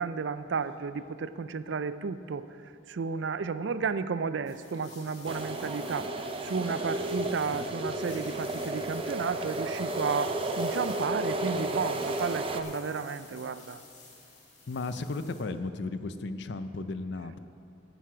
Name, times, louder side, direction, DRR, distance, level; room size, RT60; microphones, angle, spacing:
voice 1, 0.0-6.1 6.4-13.8, right 5 dB, 70° right, 13 dB, 0.4 m, -33 dB
sound 1, 4.5-15.4, left 3 dB, 40° left, 2.4 m, -51 dB
sound 2, 5.3-12.6, right 1 dB, 30° right, 0.6 m, -33 dB
voice 2, 14.7-17.4, left 3 dB, 65° left, 11 dB, 0.5 m, -35 dB
10.0 x 9.4 x 6.0 m, 2.6 s
head